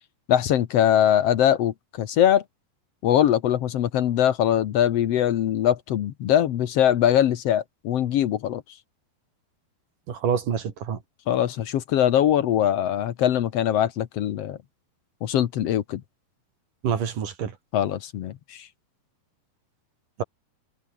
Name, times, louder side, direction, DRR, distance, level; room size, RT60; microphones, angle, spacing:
voice 1, 0.3-2.4 3.0-8.6 11.3-14.6 15.2-16.0 17.7-18.7, left 10 dB, 75° left, 1.4 m, -22 dB
voice 2, 10.1-11.0 16.8-17.5, right 7 dB, 60° right, 4.1 m, -26 dB
omnidirectional pair, 4.5 m